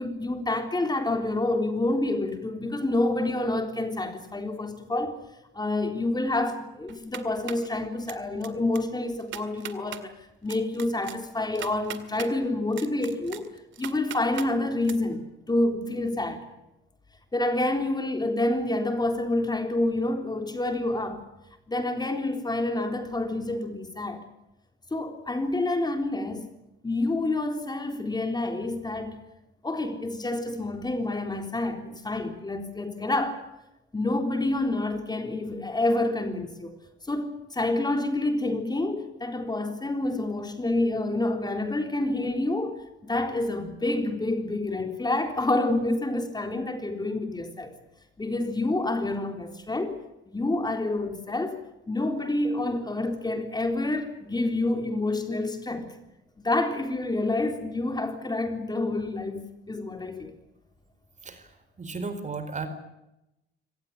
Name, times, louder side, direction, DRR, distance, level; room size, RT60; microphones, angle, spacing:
voice 1, 0.0-5.2 5.5-16.5 17.3-21.2 21.7-24.2 24.9-26.5 26.8-29.2 29.6-33.4 33.9-36.8 37.1-47.7 48.2-55.9 56.4-60.3, left 2 dB, 20° left, 3.8 m, -28 dB
sound 1, 6.9-7.7 8.1-8.5 8.7-8.8 9.2-10.0 10.5-12.3 12.7-14.5 14.8-14.9, right 11 dB, 75° right, 2.1 m, -39 dB
voice 2, 61.8-62.7, right 4 dB, 40° right, 4.4 m, -34 dB
24.5 x 18.5 x 8.5 m
cardioid pair, 90°, 20 cm